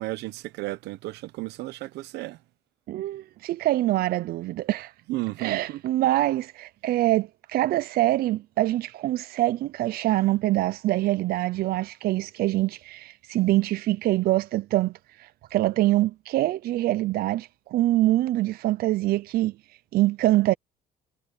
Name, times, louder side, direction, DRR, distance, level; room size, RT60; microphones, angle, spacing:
voice 1, 0.0-2.4 5.1-5.8, right 19 dB, 85° right, 0.9 m, -33 dB
voice 2, 2.9-4.9 5.4-19.5 19.9-20.5, right 16 dB, 65° right, 0.5 m, -24 dB
cardioid pair, 110°, 17 cm